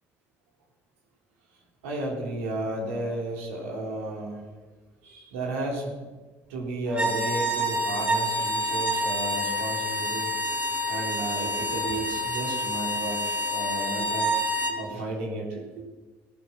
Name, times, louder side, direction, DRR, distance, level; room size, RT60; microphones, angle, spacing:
voice 1, 1.8-4.4 5.0-5.9 6.5-10.3 10.9-14.3 14.7-15.8, right 2 dB, 85° right, -2 dB, 3.5 m, -33 dB
sound 1, 6.9-14.8, equal, 20° right, 4.0 m, -28 dB
15.5 x 11.0 x 5.9 m, 1.3 s
hypercardioid pair, 60°, 7 cm